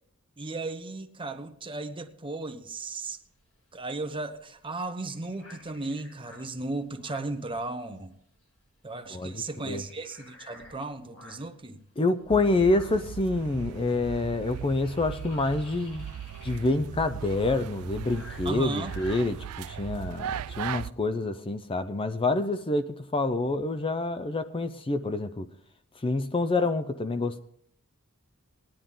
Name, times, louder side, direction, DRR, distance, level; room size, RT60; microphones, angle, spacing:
voice 1, 0.4-3.2 3.7-8.1 8.8-11.8 18.4-18.9, right 2 dB, 25° right, 1.0 m, -35 dB
sound 1, 3.2-8.1 8.4-8.6 8.9-11.6 12.1-20.2, left 2 dB, 70° left, 4.3 m, -52 dB
voice 2, 9.1-9.8 12.0-16.0 16.4-25.5 26.0-27.4, left 2 dB, 25° left, 0.5 m, -27 dB
sound 2, 12.3-20.9, right 9 dB, 75° right, 0.4 m, -38 dB
19.0 x 10.0 x 3.8 m
head